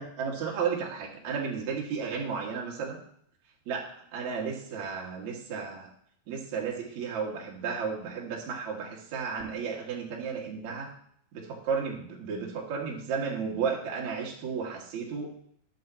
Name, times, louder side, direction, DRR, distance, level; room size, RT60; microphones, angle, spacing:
voice 1, 0.0-3.0 3.7-3.9 4.1-5.9 6.3-10.9 11.3-15.3, right 6 dB, 50° right, -2 dB, 3.0 m, -33 dB
20.5 x 7.8 x 3.1 m, 0.65 s
omnidirectional pair, 5.2 m